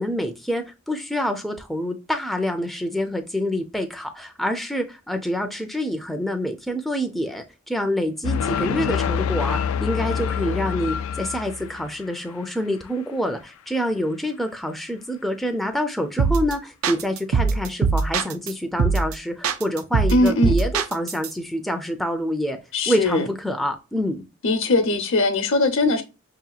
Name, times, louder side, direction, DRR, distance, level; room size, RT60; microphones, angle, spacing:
voice 1, 0.0-22.6 22.9-24.3, equal, ahead, 0.4 m, -27 dB
sound 1, 8.2-12.0, left 7 dB, 80° left, 0.3 m, -26 dB
sound 2, 16.2-16.5 16.8-18.5 18.8-19.1 19.4-21.3, right 5 dB, 85° right, 0.4 m, -21 dB
voice 2, 20.1-20.5 22.7-23.3 24.4-26.0, left 2 dB, 65° left, 0.8 m, -20 dB
5.1 x 2.8 x 2.2 m
head